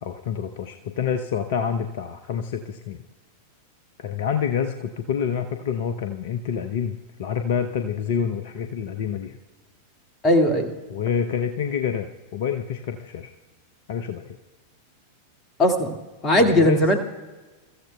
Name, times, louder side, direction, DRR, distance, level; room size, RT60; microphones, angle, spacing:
voice 1, 0.0-3.0 4.0-9.4 10.9-13.3 13.9-14.3 16.4-16.8, left 7 dB, 55° left, 8 dB, 0.7 m, -27 dB
voice 2, 10.2-10.7 15.6-16.0 16.2-17.0, left 1 dB, 25° left, 5 dB, 2.0 m, -18 dB
28.5 x 14.5 x 2.3 m, 1.2 s
figure-of-eight pair, 90°, 0 cm